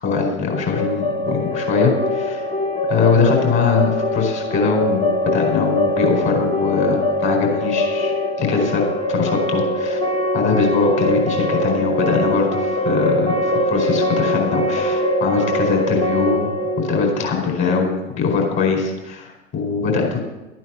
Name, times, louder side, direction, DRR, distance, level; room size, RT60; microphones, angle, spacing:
voice 1, 0.0-2.5 2.9-8.1 8.4-10.0 10.3-16.5 16.8-20.2, left 5 dB, 30° left, 1 dB, 4.5 m, -21 dB
sound 1, 0.5-18.3, left 1 dB, 10° left, 1.2 m, -22 dB
12.5 x 9.1 x 7.2 m, 1.0 s
figure-of-eight pair, 105°, 41 cm